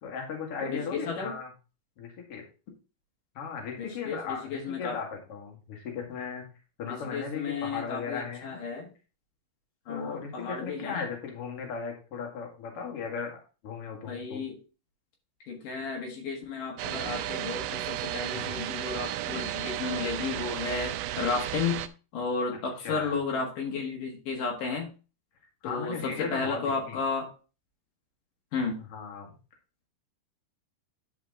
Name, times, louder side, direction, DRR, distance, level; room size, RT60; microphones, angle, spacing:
voice 1, 0.0-1.5 2.0-2.4 3.3-6.4 6.8-8.6 9.9-13.4 13.6-14.4 18.3-18.6 22.8-23.1 25.6-27.0 28.9-29.4, left 6 dB, 45° left, 1 dB, 2.6 m, -37 dB
voice 2, 0.6-1.3 3.8-5.0 6.8-8.9 9.9-11.0 14.1-14.6 15.5-21.8 22.1-24.9 25.6-27.3 28.5-28.8, left 4 dB, 65° left, 1 dB, 3.1 m, -33 dB
sound 1, 16.8-21.9, right 13 dB, 80° right, 2.0 m, -34 dB
10.5 x 5.1 x 3.7 m, 0.33 s
omnidirectional pair, 4.1 m